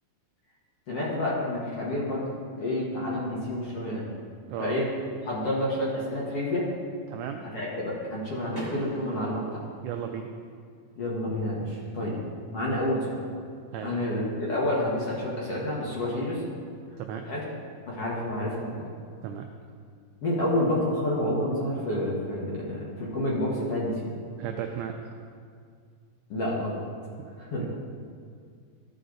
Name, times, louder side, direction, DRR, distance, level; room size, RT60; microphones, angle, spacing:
voice 1, 0.9-2.3 2.6-4.0 4.6-4.9 5.2-6.7 7.5-9.6 11.0-12.2 12.5-13.2 13.8-16.4 17.3-17.4 17.9-18.9 20.2-24.1 26.3-26.8 27.4-27.6, left 1 dB, 55° left, -5 dB, 2.0 m, -29 dB
voice 2, 7.1-7.5 8.4-8.6 9.8-10.3 13.7-14.0 17.0-17.3 19.2-19.5 24.4-25.0 27.6-27.7, right 9 dB, 85° right, 4 dB, 1.7 m, -35 dB
Car / Door, 8.5-10.4, equal, 10° left, 1.4 m, -41 dB
14.5 x 5.1 x 3.9 m, 2.1 s
omnidirectional pair, 4.0 m